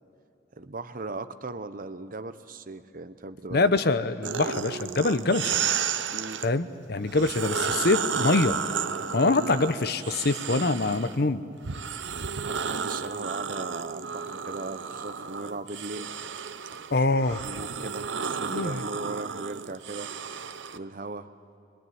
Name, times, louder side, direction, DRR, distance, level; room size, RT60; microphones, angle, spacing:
voice 1, 0.6-3.8 6.1-6.4 9.2-9.6 12.4-16.1 17.1-20.1 20.7-21.3, right 3 dB, 50° right, 11 dB, 0.9 m, -38 dB
voice 2, 3.5-5.6 6.4-8.6 9.1-11.4 16.9-17.4 18.5-18.8, left 3 dB, 60° left, 12 dB, 0.9 m, -24 dB
sound 1, 4.2-6.5 7.1-11.2 11.6-20.8, right 6 dB, 90° right, 0.8 m, -32 dB
26.0 x 22.0 x 9.5 m, 2.6 s
head